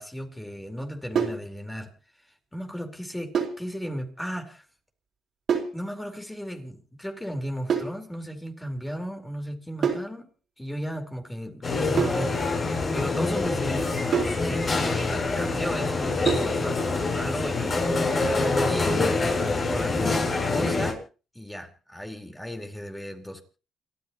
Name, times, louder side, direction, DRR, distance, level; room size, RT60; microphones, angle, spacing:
voice 1, 0.0-1.9 2.5-4.6 5.7-10.3 10.6-18.0 18.4-21.0 21.3-23.4, equal, 10° left, 4 dB, 4.3 m, -35 dB
sound 1, 1.1-1.5 3.3-3.6 5.5-5.8 7.7-8.0 9.8-10.1 12.0-12.3 14.1-14.4 16.3-16.6, right 7 dB, 60° right, 4.2 m, -26 dB
sound 2, 11.6-20.9, left 3 dB, 40° left, 7.8 m, -26 dB
29.5 x 13.0 x 3.0 m, 0.35 s
cardioid pair, 90°, 0 cm